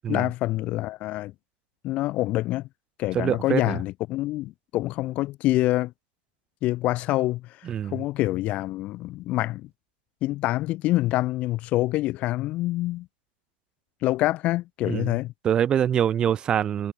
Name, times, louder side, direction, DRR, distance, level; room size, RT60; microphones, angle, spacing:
voice 1, 0.1-1.3 1.8-2.7 3.0-5.9 6.6-7.5 7.9-9.7 10.2-13.1 14.0-15.3, left 17 dB, 25° left, 5.8 m, -26 dB
voice 2, 3.1-3.8 7.6-8.0 14.8-15.1 15.4-16.9, right 9 dB, 15° right, 1.3 m, -24 dB
hypercardioid pair, 145°, 6 cm